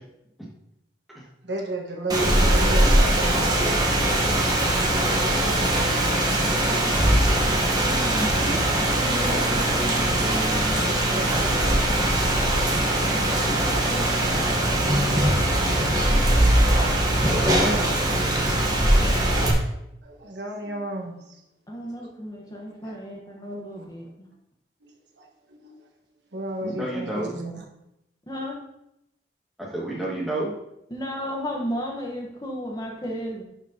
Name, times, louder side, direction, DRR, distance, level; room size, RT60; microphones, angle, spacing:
voice 1, 1.4-3.4 11.1-11.4 11.6-13.5 14.6-15.5 20.0-21.4 22.0-22.1 22.8-22.9 24.8-24.9 25.2-25.8 26.3-27.6, right 2 dB, 75° right, 2 dB, 1.4 m, -35 dB
Rain, 2.1-19.5, right 1 dB, 20° right, 1.1 m, -21 dB
voice 2, 7.9-8.6 17.2-18.4 26.6-27.4 29.7-30.5, right 1 dB, ahead, -5 dB, 1.9 m, -30 dB
voice 3, 8.8-12.2 13.0-15.3 18.9-19.2 21.7-24.3 28.3-28.6 30.9-33.4, equal, 20° left, -1 dB, 1.2 m, -35 dB
11.5 x 5.0 x 2.8 m, 0.81 s
head